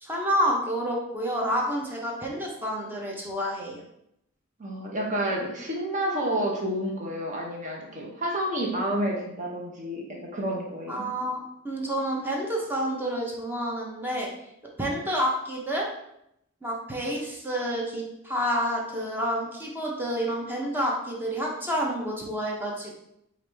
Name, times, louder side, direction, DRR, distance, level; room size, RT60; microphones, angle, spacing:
voice 1, 0.0-3.8 10.9-14.3 14.8-15.9 16.6-23.0, equal, 10° right, -2 dB, 0.7 m, -29 dB
voice 2, 4.6-11.0, right 1 dB, 40° right, -2 dB, 1.0 m, -30 dB
4.7 x 2.5 x 3.4 m, 0.79 s
head